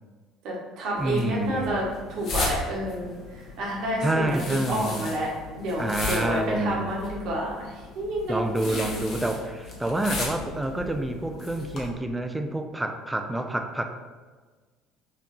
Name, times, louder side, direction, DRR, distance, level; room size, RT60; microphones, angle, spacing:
voice 1, 0.4-5.3 5.6-9.1, equal, 50° right, -4 dB, 1.1 m, -30 dB
sound 1, 1.0-11.9, left 3 dB, 45° left, 0.9 m, -36 dB
voice 2, 1.0-1.8 4.0-5.1 5.8-6.9 8.3-13.8, right 1 dB, 10° right, 5 dB, 0.4 m, -28 dB
5.6 x 3.1 x 2.5 m, 1.4 s
figure-of-eight pair, 60°, 0 cm